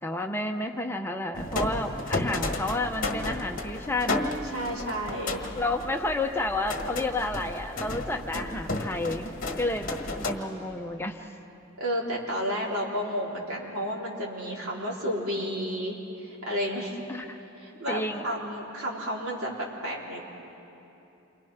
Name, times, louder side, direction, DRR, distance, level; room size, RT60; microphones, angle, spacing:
voice 1, 0.0-4.3 5.6-9.3 9.6-11.4 17.1-17.4 17.9-18.2, left 2 dB, 10° left, 4 dB, 0.7 m, -31 dB
sound 1, 1.3-10.4, left 2 dB, 35° left, 1.5 m, -33 dB
voice 2, 4.5-5.4 11.8-17.0 17.6-19.5 19.8-20.2, equal, 80° right, -4 dB, 4.3 m, -31 dB
28.5 x 24.5 x 5.8 m, 2.9 s
head